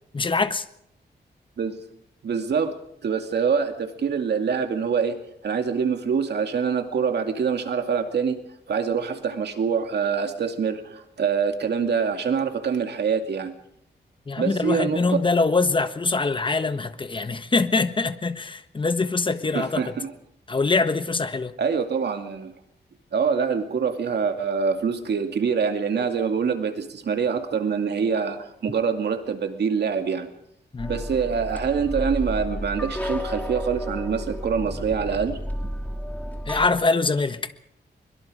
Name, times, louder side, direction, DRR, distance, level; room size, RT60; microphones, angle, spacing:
voice 1, 0.1-0.6 14.3-19.9 20.5-21.5 30.7-30.9 36.5-37.5, left 3 dB, 30° left, 1.3 m, -23 dB
voice 2, 2.2-2.7 3.0-5.2 5.4-8.4 8.7-13.5 14.4-15.2 19.5-20.1 21.6-22.5 23.1-30.3 30.9-35.4, right 6 dB, 70° right, 2.4 m, -25 dB
sound 1, 30.8-36.7, equal, 10° left, 3.2 m, -32 dB
23.0 x 22.5 x 5.1 m
wide cardioid pair, 110°, 18 cm